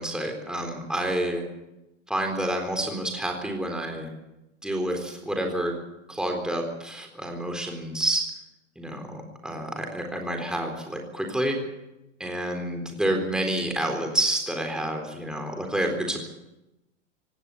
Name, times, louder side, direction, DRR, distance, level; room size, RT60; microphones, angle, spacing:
voice 1, 0.0-1.4 2.1-4.1 4.6-5.7 6.1-8.3 8.8-11.6 12.2-16.3, right 1 dB, ahead, 3 dB, 3.9 m, -29 dB
18.0 x 18.0 x 8.4 m, 0.94 s
hypercardioid pair, 100°, 37 cm